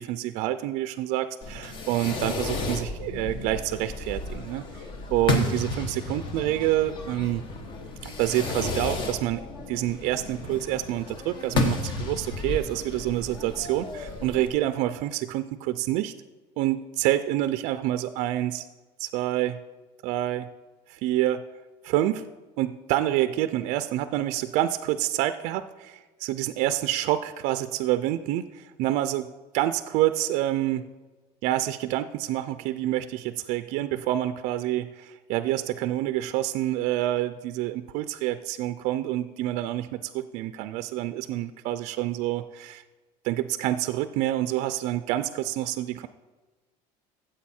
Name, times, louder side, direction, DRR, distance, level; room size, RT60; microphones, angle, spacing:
voice 1, 0.0-4.8 5.1-7.4 8.0-16.1 16.6-18.7 19.0-19.6 20.0-20.5 20.9-21.4 21.8-22.3 22.6-30.9 31.4-42.8 43.2-46.1, right 14 dB, 60° right, 11 dB, 0.4 m, -27 dB
Fireworks, 1.4-14.5, left 3 dB, 35° left, 1.0 m, -32 dB
14.0 x 7.7 x 4.3 m, 1.2 s
cardioid pair, 175°, 13 cm